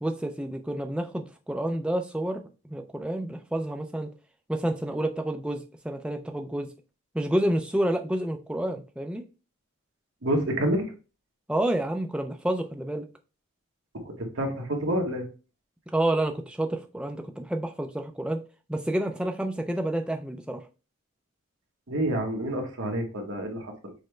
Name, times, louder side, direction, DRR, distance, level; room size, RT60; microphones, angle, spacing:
voice 1, 0.0-4.1 4.5-6.7 7.1-9.2 11.5-13.0 15.9-18.4 18.7-20.6, right 1 dB, 5° right, 0.3 m, -29 dB
voice 2, 10.2-10.9 14.0-15.2 21.9-23.9, right 1 dB, 65° right, 1.0 m, -28 dB
6.3 x 2.2 x 3.1 m
head